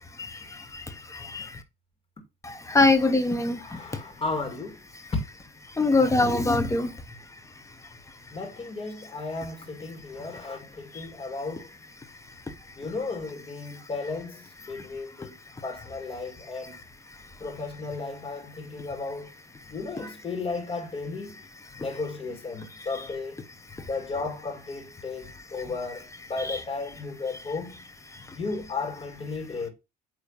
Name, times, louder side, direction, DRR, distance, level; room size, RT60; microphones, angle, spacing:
voice 1, 0.2-1.6 2.4-3.8 5.8-7.2 10.9-11.1 14.7-14.8 26.4-26.6, left 2 dB, 15° left, 1.3 m, -24 dB
voice 2, 3.6-4.8 5.1-5.2 8.3-11.7 12.8-15.3 15.6-16.8 17.4-19.3 19.7-21.3 21.8-23.4 23.8-27.8 28.3-29.7, left 3 dB, 30° left, 2.2 m, -34 dB
8.9 x 3.4 x 5.5 m
cardioid pair, 110°, 17 cm